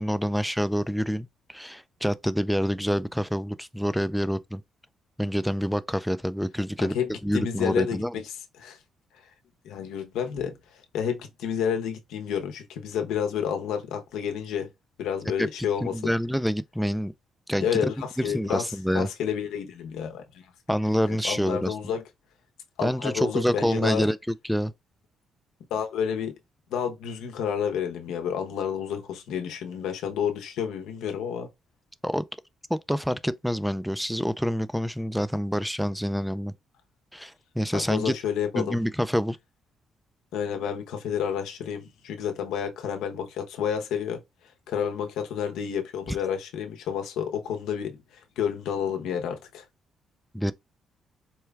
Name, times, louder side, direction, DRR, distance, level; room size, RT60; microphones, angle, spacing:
voice 1, 0.0-4.6 5.2-6.9 7.2-8.2 15.4-15.5 15.8-17.1 17.5-17.8 18.2-19.1 20.7-21.7 22.8-24.7 32.0-32.2 32.7-36.5 37.1-38.1 38.5-39.4 50.3-50.5, equal, ahead, 0.3 m, -27 dB
voice 2, 6.8-8.2 8.6-8.8 9.6-10.6 10.9-14.7 15.0-16.1 17.6-18.6 18.9-20.4 21.1-22.0 22.8-24.1 25.7-26.4 26.7-31.5 37.7-38.8 40.3-44.2 44.7-48.0 48.4-49.6, left 8 dB, 90° left, 0.8 m, -30 dB
4.5 x 2.3 x 3.3 m
cardioid pair, 90°, 0 cm